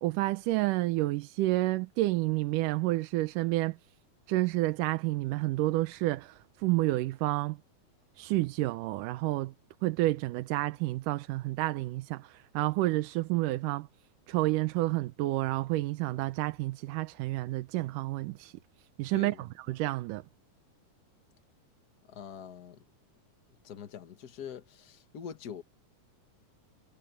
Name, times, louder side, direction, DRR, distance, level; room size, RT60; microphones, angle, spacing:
voice 1, 0.0-3.8 4.3-7.6 8.2-9.5 9.8-13.9 14.3-18.6 19.0-20.2, right 18 dB, 85° right, 2.3 m, -30 dB
voice 2, 22.0-22.8 23.5-25.6, left 8 dB, 55° left, 1.1 m, -44 dB
omnidirectional pair, 3.6 m